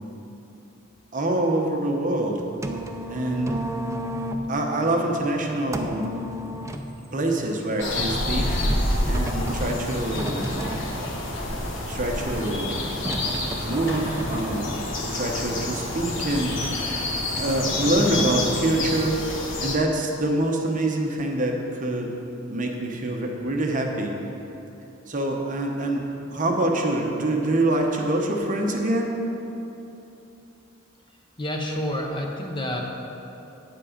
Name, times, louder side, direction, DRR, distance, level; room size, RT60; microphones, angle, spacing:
voice 1, 1.1-2.4 3.1-3.6 4.5-6.1 7.1-8.6 9.1-10.4 11.9-12.9 13.6-14.7 15.1-16.8 17.4-19.3 19.6-22.1 22.5-24.2 25.1-29.1, right 1 dB, 40° right, 1 dB, 0.9 m, -25 dB
sound 1, 2.2-18.6, equal, 15° right, 0.4 m, -35 dB
sound 2, 7.8-19.8, left 1 dB, 65° left, 1.2 m, -28 dB
voice 2, 31.4-32.8, left 1 dB, 25° left, 1 dB, 0.8 m, -28 dB
8.7 x 7.4 x 5.1 m, 2.9 s
head